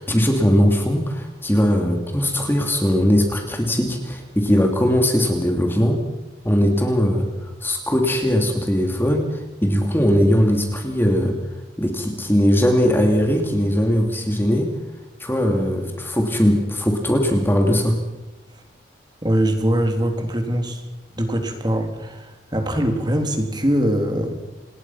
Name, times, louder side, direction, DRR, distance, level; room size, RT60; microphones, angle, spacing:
voice 1, 0.0-6.0 6.4-7.3 7.6-11.4 11.8-14.7 15.2-18.0, equal, 10° left, 3 dB, 2.8 m, -19 dB
voice 2, 19.2-20.8 21.1-24.4, equal, 25° right, 5 dB, 3.3 m, -22 dB
28.0 x 20.5 x 6.0 m, 1.1 s
head